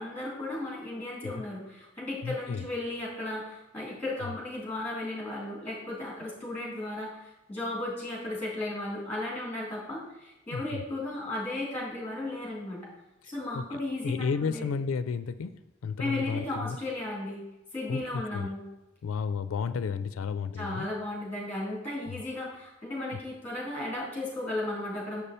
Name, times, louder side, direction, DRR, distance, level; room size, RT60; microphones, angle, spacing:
voice 1, 0.0-12.8 13.3-14.6 16.0-17.4 17.7-18.6 20.5-25.2, left 2 dB, 10° left, -4 dB, 3.1 m, -35 dB
voice 2, 2.2-2.7 10.5-10.8 13.5-15.5 15.8-16.8 17.9-18.5 19.0-20.9 22.1-22.2 23.1-23.2, left 5 dB, 90° left, 12 dB, 0.4 m, -32 dB
7.1 x 6.8 x 4.2 m, 0.99 s
head